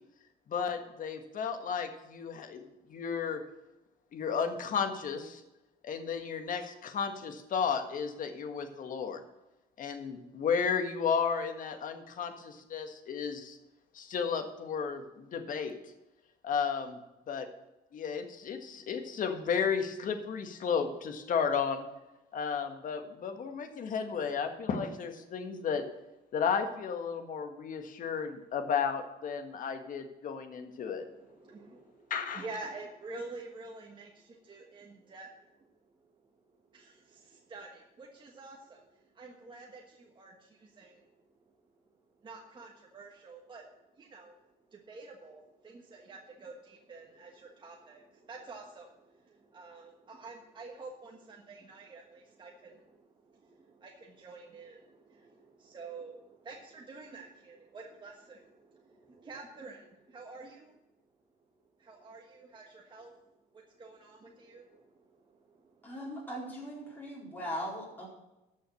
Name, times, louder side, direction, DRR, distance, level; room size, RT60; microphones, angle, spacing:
voice 1, 0.5-2.6 2.9-3.4 4.1-5.4 5.8-9.2 9.8-13.6 13.9-15.8 16.4-17.0 17.3-17.5 17.9-21.9 22.3-25.9 26.3-31.0 32.1-32.4, left 6 dB, 50° left, 7 dB, 1.6 m, -33 dB
voice 2, 30.9-36.1 36.7-41.4 42.2-43.7 44.0-44.3 44.7-60.8 61.8-63.1 63.5-66.0 66.9-67.3, right 3 dB, 30° right, 0 dB, 1.4 m, -49 dB
voice 3, 65.8-68.1, equal, 10° left, -5 dB, 4.4 m, -39 dB
12.5 x 6.4 x 6.5 m, 0.99 s
cardioid pair, 110°, 17 cm